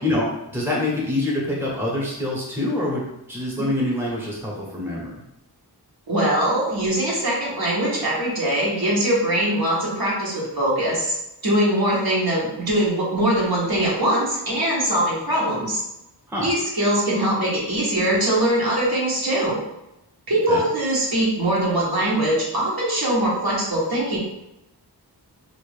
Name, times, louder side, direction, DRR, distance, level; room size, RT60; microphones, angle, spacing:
voice 1, 0.5-5.1 16.3-16.5 20.5-20.6, left 1 dB, 5° right, -4 dB, 1.0 m, -25 dB
voice 2, 6.1-11.1 11.4-15.8 16.4-19.6 20.3-24.2, right 1 dB, 60° right, -6 dB, 1.2 m, -22 dB
2.9 x 2.5 x 3.5 m, 0.89 s
wide cardioid pair, 50°, 41 cm